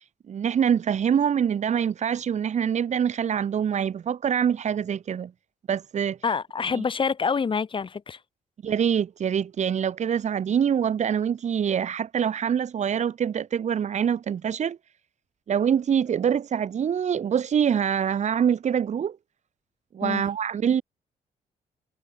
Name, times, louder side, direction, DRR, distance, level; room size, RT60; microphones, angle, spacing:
voice 1, 0.0-5.3 5.7-6.2 6.7-6.8 8.6-14.8 15.5-19.2 19.9-20.8, right 8 dB, 50° right, 7.1 m, -25 dB
voice 2, 6.2-8.2 20.0-20.2, left 5 dB, 35° left, 6.7 m, -26 dB
cardioid pair, 135°, 15 cm